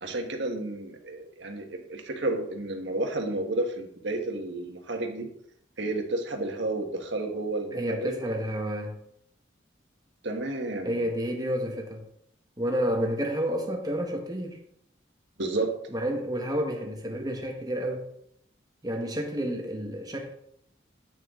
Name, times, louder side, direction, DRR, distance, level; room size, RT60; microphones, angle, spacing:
voice 1, 0.0-5.3 5.8-8.1 10.2-10.9 15.4-15.7, right 2 dB, 75° right, 3 dB, 1.4 m, -31 dB
voice 2, 7.7-9.0 10.8-12.1 12.6-14.6 15.9-18.1 18.8-20.3, equal, 20° right, 1 dB, 1.3 m, -30 dB
8.7 x 6.4 x 3.7 m, 0.71 s
head